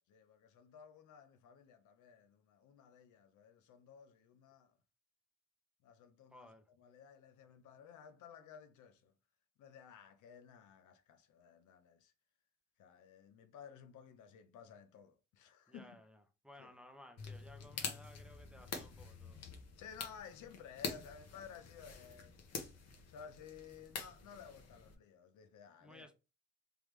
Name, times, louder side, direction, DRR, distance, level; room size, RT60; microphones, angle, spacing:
voice 1, 0.1-4.8 5.8-6.5 6.8-9.1 9.6-12.1 12.8-16.0 16.6-16.7 17.7-17.8 19.8-22.5 23.1-26.1, left 7 dB, 80° left, 0.7 m, -56 dB
voice 2, 6.3-6.6 15.7-19.4 25.8-26.1, left 1 dB, 5° right, 0.7 m, -58 dB
sound 1, 17.2-24.9, left 5 dB, 55° left, 1.1 m, -47 dB
3.4 x 3.4 x 3.2 m
cardioid pair, 90°, 30 cm